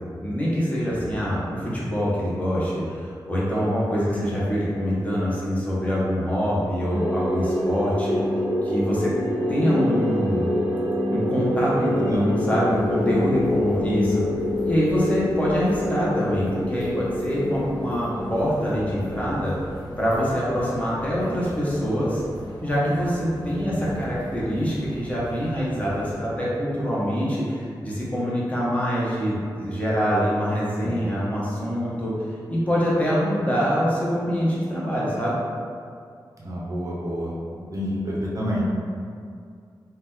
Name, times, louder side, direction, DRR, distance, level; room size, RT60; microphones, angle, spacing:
voice 1, 0.2-8.2 8.6-9.1 9.5-10.5 11.1-14.2 14.6-19.5 20.0-22.2 22.6-32.1 32.5-35.4, equal, 20° left, -7 dB, 0.6 m, -24 dB
sound 1, 6.9-19.7, left 1 dB, 10° right, 1.3 m, -26 dB
sound 2, 12.7-26.2, right 1 dB, 60° left, 0.7 m, -41 dB
voice 2, 23.7-24.0 30.8-30.9 36.4-37.4 37.7-38.6, equal, 45° right, -5 dB, 0.5 m, -29 dB
2.7 x 2.1 x 3.5 m, 2.3 s
wide cardioid pair, 175°, 8 cm